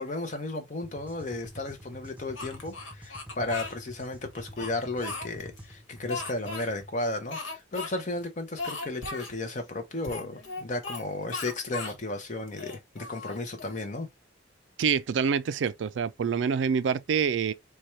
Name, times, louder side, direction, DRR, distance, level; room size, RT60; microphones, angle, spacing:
voice 1, 0.0-14.1, left 2 dB, 40° left, 0.6 m, -34 dB
sound 1, 0.8-6.9, equal, 5° right, 0.7 m, -47 dB
Speech, 2.3-3.7 4.3-5.6 6.1-6.7 7.3-7.9 8.2-8.3 8.6-9.3 10.0-11.0 11.3-12.0 12.5-13.8, left 3 dB, 85° left, 1.2 m, -37 dB
voice 2, 14.8-17.5, right 6 dB, 70° right, 0.3 m, -26 dB
4.2 x 2.3 x 3.0 m
head